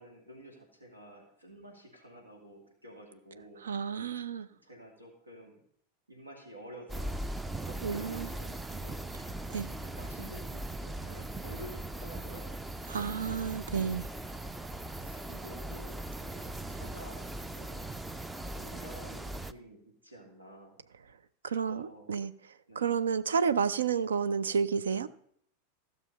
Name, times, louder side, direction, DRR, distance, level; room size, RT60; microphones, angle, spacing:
voice 1, 0.0-3.6 4.5-5.6 6.1-9.0 9.6-12.5 15.2-17.9 18.4-20.8 21.5-22.1 22.7-23.0, equal, 80° right, 2.2 m, -51 dB
voice 2, 3.6-4.5 7.8-8.3 9.5-9.7 12.9-14.1 21.4-22.3 22.8-25.1, right 6 dB, 65° right, 0.5 m, -30 dB
sound 1, 6.9-19.5, right 1 dB, 10° right, 0.4 m, -39 dB
15.0 x 6.6 x 5.3 m
figure-of-eight pair, 90°, 0 cm